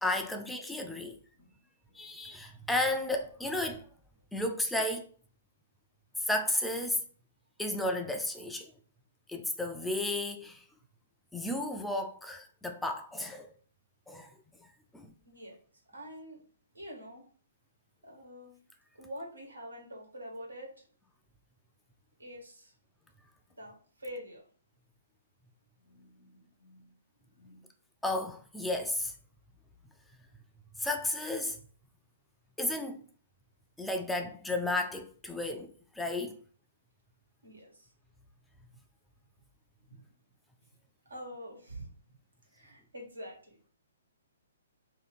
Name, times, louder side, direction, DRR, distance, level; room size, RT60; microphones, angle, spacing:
voice 1, 0.0-1.2 1.9-3.9 4.3-5.1 6.2-7.0 7.6-8.7 9.3-10.6 11.3-13.5 14.1-14.3 14.9-15.1 28.0-29.1 30.8-31.6 32.6-33.0 33.8-36.4, left 1 dB, 5° left, 0.4 m, -33 dB
voice 2, 15.2-15.6 15.9-16.4 16.7-17.2 18.0-18.6 18.9-20.9 22.2-22.7 23.5-24.5 25.8-26.9 27.3-27.7 37.4-37.9 39.9-40.1 41.0-41.9 42.5-43.6, equal, 90° right, 1.4 m, -46 dB
2.8 x 2.7 x 4.1 m
figure-of-eight pair, 125°, 0 cm